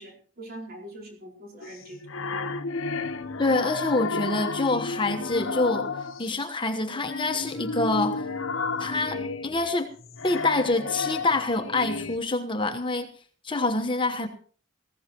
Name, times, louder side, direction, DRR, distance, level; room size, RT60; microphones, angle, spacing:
voice 1, 0.0-2.1, right 1 dB, 50° right, 0 dB, 4.7 m, -43 dB
sound 1, 1.6-6.4 6.9-12.2, left 4 dB, 85° left, 1.1 m, -32 dB
voice 2, 3.4-8.3 8.8-9.9 10.2-13.1 13.4-14.3, left 2 dB, 25° left, 6 dB, 1.1 m, -26 dB
19.5 x 15.5 x 2.9 m, 0.42 s
head